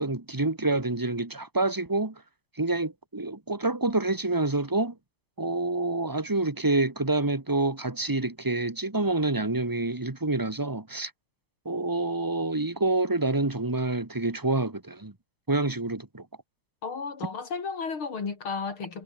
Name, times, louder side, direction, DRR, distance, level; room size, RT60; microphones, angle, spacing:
voice 1, 0.0-2.2 2.6-5.0 5.4-11.1 11.7-15.1 15.5-16.3, right 2 dB, 10° right, 1.6 m, -27 dB
voice 2, 16.8-19.0, left 5 dB, 90° left, 4.2 m, -33 dB
omnidirectional pair, 2.2 m